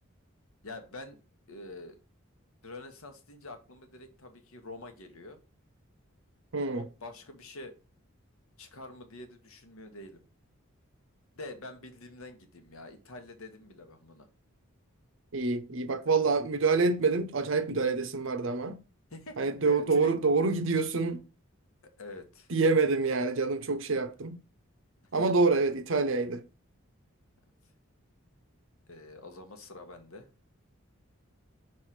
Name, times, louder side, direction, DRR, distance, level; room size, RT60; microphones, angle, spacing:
voice 1, 0.6-1.2 1.5-2.0 2.6-5.4 6.7-7.8 8.6-10.2 11.3-14.3 19.1-20.2 21.8-22.5 28.9-30.3, left 2 dB, 75° left, 1.1 m, -46 dB
voice 2, 15.3-18.8 19.4-21.2 22.5-24.4 25.1-26.4, right 4 dB, 60° right, 0.6 m, -26 dB
6.1 x 3.2 x 5.8 m
head